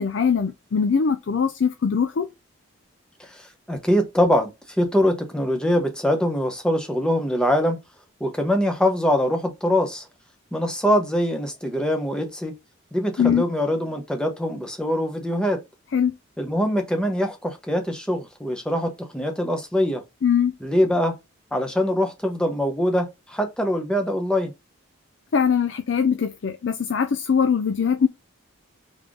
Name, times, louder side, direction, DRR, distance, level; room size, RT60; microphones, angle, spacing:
voice 1, 0.0-2.3 13.2-13.4 15.9-16.1 20.2-20.5 25.3-28.1, left 6 dB, 55° left, 0.4 m, -21 dB
voice 2, 3.2-7.8 8.2-10.1 10.5-12.5 12.9-15.6 16.4-20.0 20.6-21.2 21.5-24.5, equal, 5° left, 0.8 m, -23 dB
3.5 x 3.5 x 3.6 m
head